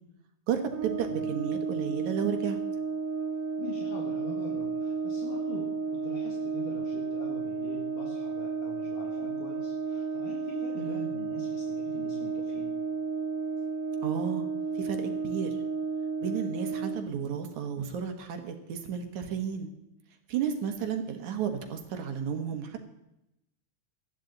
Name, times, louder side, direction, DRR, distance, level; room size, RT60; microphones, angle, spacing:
voice 1, 0.5-2.6 10.8-11.2 14.0-14.5 14.7-15.5 16.2-19.7 20.3-22.9, right 7 dB, 70° right, 5 dB, 2.7 m, -33 dB
Brass instrument, 0.7-17.1, right 5 dB, 90° right, 2.5 m, -32 dB
voice 2, 1.1-1.4 3.6-12.7, left 4 dB, 75° left, -1 dB, 3.5 m, -44 dB
18.5 x 13.5 x 4.0 m, 0.88 s
omnidirectional pair, 3.7 m